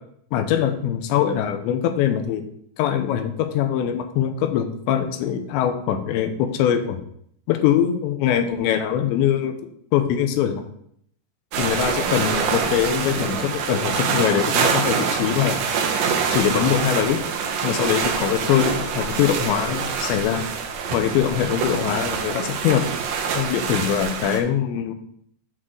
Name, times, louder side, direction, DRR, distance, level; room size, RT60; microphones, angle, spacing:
voice 1, 0.3-2.4 2.8-7.0 7.5-9.5 9.9-10.6 11.6-15.6 16.3-17.2 17.6-20.4 20.9-22.8 23.3-24.9, left 9 dB, 90° left, 7 dB, 3.0 m, -22 dB
sound 1, 11.5-24.4, right 6 dB, 75° right, 2.1 m, -25 dB
8.2 x 3.8 x 6.0 m, 0.69 s
omnidirectional pair, 5.1 m